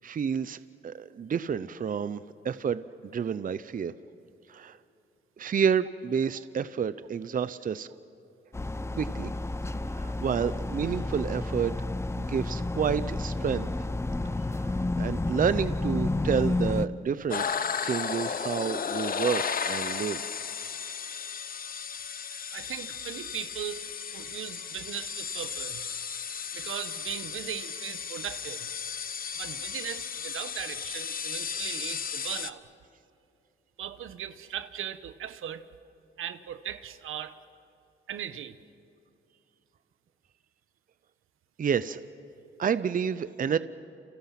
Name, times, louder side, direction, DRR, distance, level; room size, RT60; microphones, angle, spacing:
voice 1, 0.0-3.9 4.5-4.8 5.4-7.9 9.0-9.3 9.9-11.7 12.2-13.7 14.5-20.2 41.6-42.0 42.6-43.6, right 7 dB, 40° right, 14 dB, 0.7 m, -29 dB
sound 1, 8.5-16.9, left 2 dB, 15° left, 0.6 m, -31 dB
sound 2, 17.3-32.5, left 6 dB, 45° left, 1.0 m, -34 dB
voice 2, 22.5-25.9 26.5-28.7 29.3-32.6 33.8-35.6 36.2-37.4 38.1-38.6, right 10 dB, 80° right, 11 dB, 1.2 m, -38 dB
29.5 x 29.0 x 5.9 m, 2.8 s
cardioid pair, 100°, 21 cm